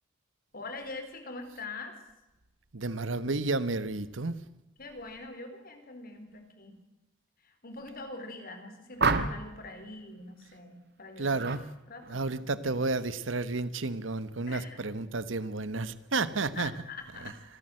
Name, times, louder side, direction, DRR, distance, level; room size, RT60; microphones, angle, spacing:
voice 1, 0.5-2.0 4.8-6.8 7.4-11.4 11.9-12.8 14.5-14.8 16.6-17.4, left 3 dB, 50° left, 6 dB, 4.3 m, -43 dB
voice 2, 2.7-4.4 11.2-11.7 12.1-16.7, right 3 dB, 85° right, 15 dB, 1.2 m, -31 dB
sound 1, 9.0-9.6 11.4-11.6 12.0-12.4, right 4 dB, 60° right, 1.6 m, -29 dB
26.0 x 14.5 x 7.8 m, 0.98 s
head